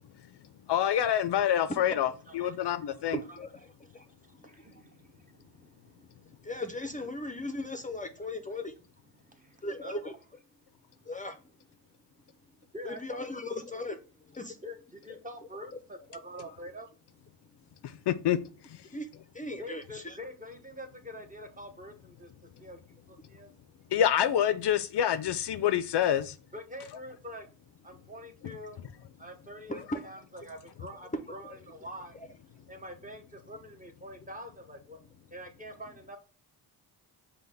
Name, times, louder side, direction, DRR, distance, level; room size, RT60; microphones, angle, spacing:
voice 1, 0.7-3.2 17.8-18.8 23.9-26.4 28.4-28.5, left 10 dB, 70° left, 0.5 m, -27 dB
voice 2, 2.3-3.4 4.1-6.5 9.2-10.1 11.0-11.1 12.7-13.2 14.6-16.9 19.6-22.3 22.6-23.5 26.5-27.5 27.8-28.8 29.2-32.2 32.7-35.0 35.3-36.2, equal, 20° right, 0.8 m, -46 dB
voice 3, 3.1-4.1 4.7-4.8 6.4-8.7 9.6-10.1 11.1-11.4 12.8-14.0 14.2-14.6 15.1-15.2 17.9-18.0 18.9-19.1 19.3-20.2 29.7-30.1 31.3-31.4 32.2-32.3, left 2 dB, 20° left, 0.5 m, -38 dB
5.6 x 2.2 x 3.3 m
cardioid pair, 75°, 43 cm